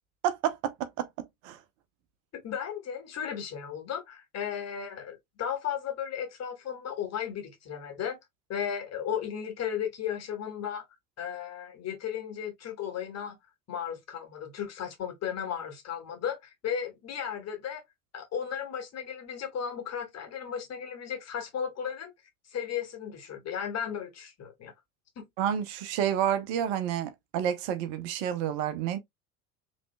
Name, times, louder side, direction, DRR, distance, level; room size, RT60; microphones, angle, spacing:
voice 1, 0.2-1.1 1.4-1.6 25.4-29.0, right 9 dB, 50° right, 0.8 m, -29 dB
voice 2, 2.4-8.2 8.5-10.8 11.2-13.4 13.7-17.8 18.1-22.1 22.5-24.7 25.2-25.3, left 8 dB, 35° left, 1.9 m, -35 dB
5.2 x 3.2 x 2.2 m
figure-of-eight pair, 65°, 44 cm